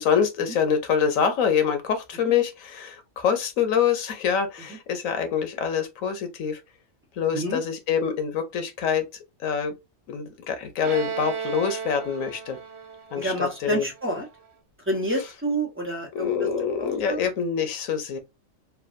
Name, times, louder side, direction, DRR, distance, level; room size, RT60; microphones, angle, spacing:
voice 1, 0.0-6.6 7.2-9.0 9.4-9.8 10.1-12.6 13.1-13.9 16.1-18.2, left 7 dB, 90° left, 1.2 m, -25 dB
Bowed string instrument, 10.8-14.4, right 6 dB, 60° right, 1.0 m, -35 dB
voice 2, 13.1-14.3 14.9-16.3 16.8-17.2, right 1 dB, 10° right, 0.8 m, -28 dB
3.3 x 2.3 x 2.5 m
omnidirectional pair, 1.4 m